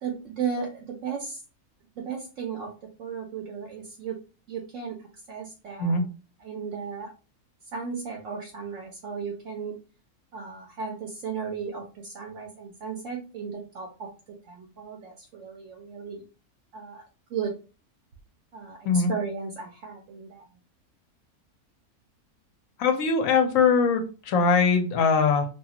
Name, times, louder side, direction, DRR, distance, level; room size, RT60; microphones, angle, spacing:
voice 1, 0.0-1.4 2.0-2.7 3.0-4.2 4.5-5.0 5.3-6.0 6.4-7.1 7.7-9.7 10.3-14.1 14.5-16.2 16.7-17.0 17.3-17.5 18.5-20.5, right 6 dB, 70° right, 0 dB, 0.9 m, -35 dB
voice 2, 22.8-25.5, left 5 dB, 70° left, 5 dB, 1.0 m, -21 dB
2.6 x 2.4 x 2.8 m, 0.33 s
omnidirectional pair, 1.6 m